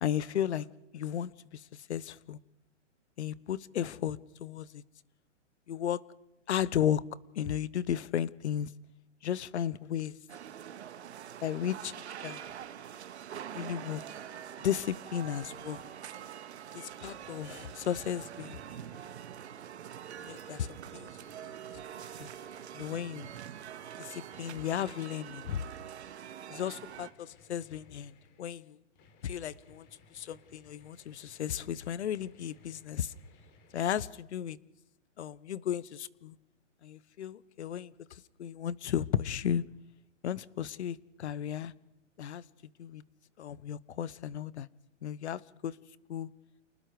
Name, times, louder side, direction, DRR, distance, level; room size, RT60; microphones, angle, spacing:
voice 1, 0.0-0.7 0.9-2.4 3.2-4.8 5.7-6.0 6.5-7.0 7.3-8.7 9.2-10.2 11.4-11.9 12.2-12.4 13.3-14.0 14.6-15.8 16.7-18.6 20.2-20.7 20.9-21.1 21.4-21.5 22.2-22.3 22.7-23.3 24.0-25.6 26.5-28.1 28.4-28.8 29.2-33.1 33.7-34.6 35.2-36.4 36.8-39.6 40.2-41.7 42.2-42.4 42.8-43.0 43.4-44.7 45.0-45.8 46.1-46.3, left 10 dB, 65° left, 20 dB, 1.2 m, -34 dB
sound 1, 10.3-27.1, right 9 dB, 60° right, 2.0 m, -45 dB
sound 2, 15.9-16.5 17.1-19.5 20.2-23.0 23.3-25.1 25.4-26.2 26.9-34.0, left 3 dB, 30° left, 3.8 m, -63 dB
29.0 x 20.0 x 5.1 m, 0.90 s
hypercardioid pair, 150°, 37 cm